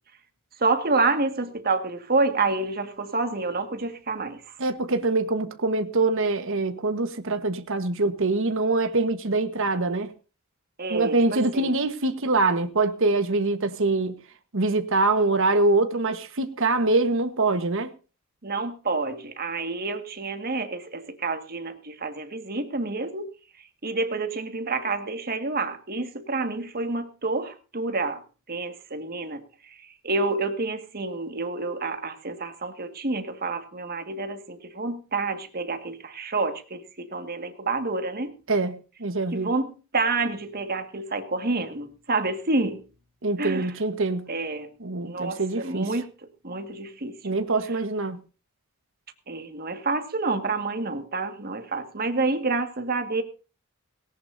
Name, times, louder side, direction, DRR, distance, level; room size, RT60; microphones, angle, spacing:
voice 1, 0.6-4.6 10.8-11.8 18.4-23.3 23.8-28.2 28.5-38.4 39.3-42.8 43.4-43.7 44.3-44.8 45.0-46.1 46.4-47.2 49.3-53.2, right 3 dB, 45° right, 1.9 m, -28 dB
voice 2, 4.6-10.1 10.9-14.2 14.5-17.9 38.5-39.5 43.2-44.3 44.8-45.9 47.2-48.2, right 3 dB, 60° right, 1.3 m, -24 dB
18.0 x 18.0 x 2.7 m
head